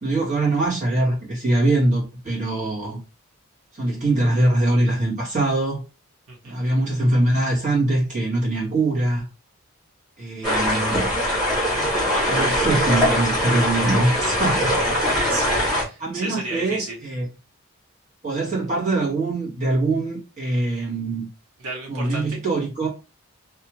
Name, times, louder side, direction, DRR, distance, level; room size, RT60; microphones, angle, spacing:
voice 1, 0.0-3.0 3.7-5.8 6.4-9.3 10.2-11.1 12.3-14.9 16.0-17.2 18.2-21.3 21.9-22.9, right 2 dB, 35° right, 1.3 m, -23 dB
voice 2, 6.3-6.6 14.9-17.0 21.6-22.4, right 2 dB, 90° right, 0.9 m, -33 dB
sound 1, 10.4-15.8, equal, ahead, 1.3 m, -22 dB
2.7 x 2.3 x 2.9 m
head